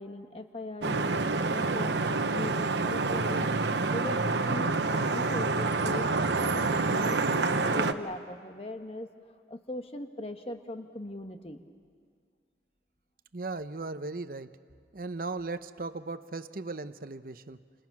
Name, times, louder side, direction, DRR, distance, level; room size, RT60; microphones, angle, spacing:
voice 1, 0.0-2.0 2.3-3.5 3.9-11.7, left 1 dB, 30° left, 6 dB, 1.3 m, -40 dB
Vehicle horn car horn honking / Traffic noise roadway noise, 0.8-7.9, right 3 dB, 80° right, 1.0 m, -27 dB
voice 2, 13.3-14.6 14.9-17.6, right 3 dB, 50° right, 12 dB, 0.8 m, -37 dB
30.0 x 27.5 x 6.1 m, 2.1 s
head